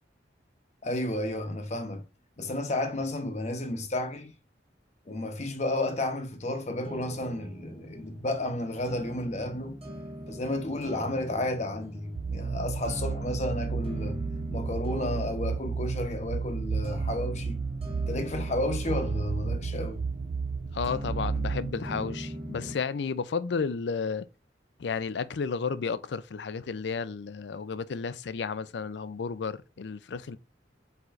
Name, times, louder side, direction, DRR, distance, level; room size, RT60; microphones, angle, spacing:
voice 1, 0.8-2.0 2.4-4.3 5.1-9.8 10.3-14.2 14.5-17.6 18.1-20.0, left 1 dB, 40° left, 0.9 m, -32 dB
sound 1, 6.8-22.8, equal, 30° right, 1.6 m, -41 dB
sound 2, 12.2-21.7, right 5 dB, 60° right, 0.3 m, -32 dB
voice 2, 20.7-24.3 24.8-30.4, left 5 dB, 70° left, 0.4 m, -32 dB
4.7 x 4.5 x 2.5 m
head